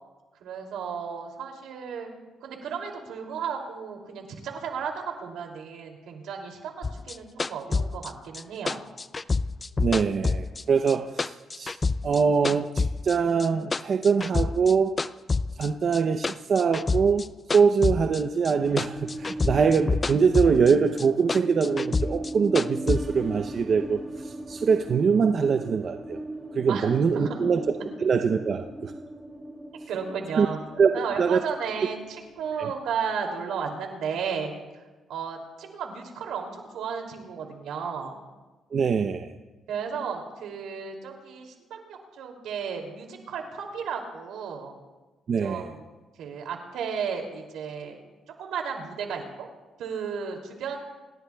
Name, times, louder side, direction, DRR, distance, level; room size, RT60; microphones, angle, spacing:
voice 1, 0.4-2.1 2.4-8.8 26.7-27.4 29.9-30.6 30.9-34.8 35.1-38.2 39.7-44.8 45.4-45.9 46.2-48.0 48.4-49.5 49.8-50.8, right 6 dB, 85° right, 2 dB, 2.7 m, -34 dB
sound 1, 6.8-10.9 11.2-13.1 13.4-14.7 15.0-18.5 18.8-20.7 21.0-23.0, left 4 dB, 30° left, 0.4 m, -27 dB
voice 2, 9.8-11.8 12.0-15.0 15.6-26.2 26.5-27.6 28.0-28.9 30.3-30.5 30.8-30.9 31.2-31.4 32.6-32.7 38.7-39.3 45.3-45.7, right 5 dB, 50° right, 6 dB, 0.7 m, -23 dB
sound 2, 18.6-33.3, right 1 dB, 20° right, 2.4 m, -38 dB
27.0 x 17.5 x 2.3 m, 1.2 s
cardioid pair, 90°, 0 cm